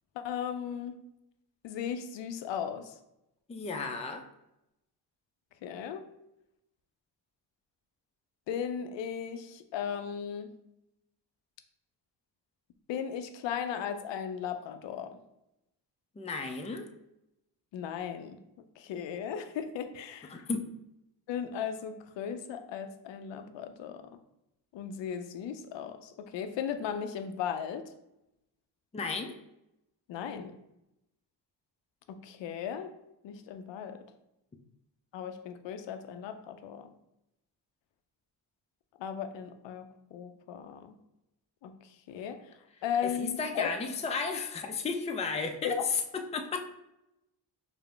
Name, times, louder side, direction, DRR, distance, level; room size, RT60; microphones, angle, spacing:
voice 1, 0.2-0.9 1.6-2.9 5.6-6.1 8.5-10.5 12.9-15.2 17.7-18.4 18.8-20.4 21.3-24.0 24.7-27.9 30.1-30.6 32.1-32.9 33.2-34.0 35.1-36.9 39.0-41.0 41.6-41.8 42.1-42.4 42.8-43.7 45.6-45.7, left 8 dB, 80° left, 8 dB, 0.5 m, -36 dB
voice 2, 3.5-4.3 16.2-16.9 20.3-20.6 28.9-29.3 43.0-46.7, left 4 dB, 15° left, 4 dB, 0.4 m, -33 dB
5.0 x 2.0 x 3.3 m, 0.87 s
cardioid pair, 60°, 44 cm